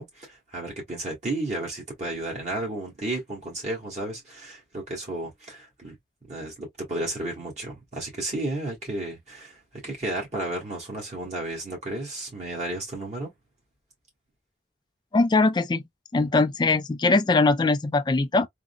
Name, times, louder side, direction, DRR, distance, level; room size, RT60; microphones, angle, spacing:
voice 1, 0.0-6.0 6.3-13.3, right 2 dB, 40° right, 1.5 m, -33 dB
voice 2, 15.1-15.8 16.1-18.5, left 3 dB, 25° left, 0.3 m, -21 dB
3.7 x 2.0 x 2.2 m
head